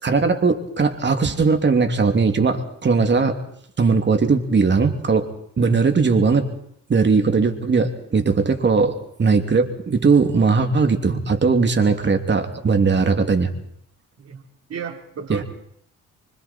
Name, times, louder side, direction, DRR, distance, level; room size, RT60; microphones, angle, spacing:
voice 1, 0.0-3.4 3.8-5.3 5.6-6.5 6.9-8.9 9.2-13.5 15.3-15.4, right 4 dB, 35° right, 6 dB, 2.9 m, -19 dB
voice 2, 14.7-15.4, right 7 dB, 55° right, 1 dB, 4.0 m, -33 dB
25.5 x 24.5 x 4.5 m, 0.69 s
cardioid pair, 90°, 30 cm